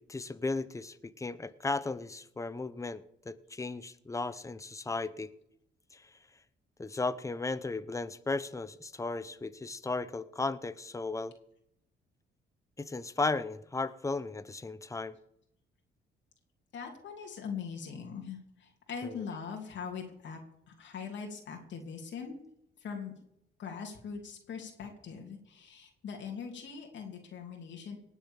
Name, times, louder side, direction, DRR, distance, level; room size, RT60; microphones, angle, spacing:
voice 1, 0.0-5.3 5.9-6.1 6.8-11.3 12.8-15.2 19.0-19.2, left 3 dB, 15° left, 14 dB, 0.9 m, -35 dB
voice 2, 16.7-20.4 20.7-22.4 22.8-23.1 23.6-28.0, left 6 dB, 65° left, 1 dB, 3.0 m, -41 dB
19.0 x 7.1 x 7.3 m, 0.74 s
cardioid pair, 90°, 20 cm